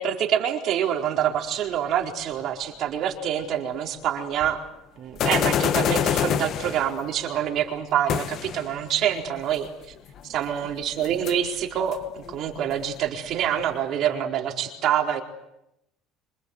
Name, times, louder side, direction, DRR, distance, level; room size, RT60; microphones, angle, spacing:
voice 1, 0.0-4.6 5.0-9.7 10.3-15.2, right 9 dB, 55° right, 2 dB, 4.4 m, -26 dB
sound 1, 4.4-4.5 5.2-7.0 8.1-8.7 10.2-10.3 10.6-10.7 11.0-11.3 11.8-13.6, left 9 dB, 50° left, 1.4 m, -26 dB
27.0 x 26.5 x 8.1 m, 0.87 s
supercardioid pair, 115°, 0 cm